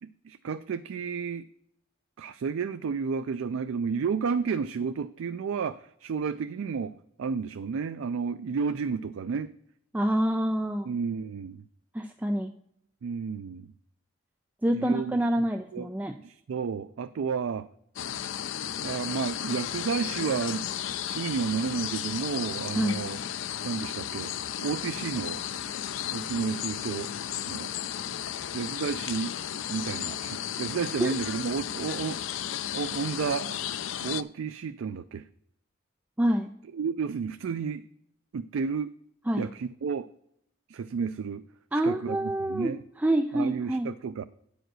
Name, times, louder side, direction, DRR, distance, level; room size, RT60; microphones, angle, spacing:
voice 1, 0.0-1.5 2.2-6.9 7.2-9.5 10.9-11.6 13.0-13.7 14.7-15.9 16.2-17.7 18.8-20.7 21.1-23.2 23.6-24.3 24.6-25.4 26.0-27.1 27.5-27.7 28.5-29.3 29.7-32.4 32.7-33.6 34.0-35.3 36.7-37.8 38.3-38.9 39.4-40.1 40.7-41.4 41.8-42.8 43.3-44.2, right 5 dB, 80° right, 11 dB, 0.4 m, -31 dB
voice 2, 9.9-10.9 11.9-12.5 14.6-16.2 22.7-23.0 31.0-31.1 36.2-36.5 39.3-39.5 41.7-43.9, right 1 dB, 10° right, 6 dB, 0.3 m, -27 dB
sound 1, 18.0-34.2, left 10 dB, 70° left, 0.4 m, -34 dB
8.9 x 5.1 x 6.1 m, 0.72 s
head